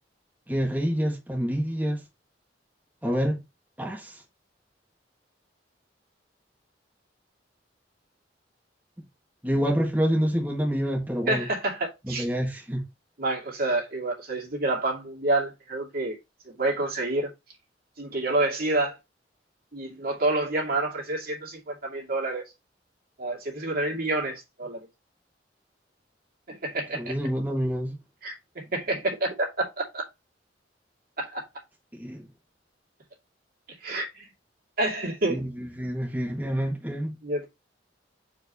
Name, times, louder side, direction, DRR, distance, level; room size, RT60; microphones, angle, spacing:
voice 1, 0.5-2.0 3.0-3.4 3.8-4.2 9.4-11.5 12.1-12.8 26.9-28.0 31.9-32.3 35.3-37.1, equal, 10° right, 1.8 m, -27 dB
voice 2, 11.3-12.3 13.2-16.2 16.5-17.3 18.0-19.0 19.7-22.4 23.2-24.8 26.5-27.1 28.2-30.0 31.2-31.4 33.8-34.3 34.8-35.4 37.2-37.5, right 2 dB, 55° right, 2.5 m, -28 dB
7.5 x 4.8 x 2.9 m
head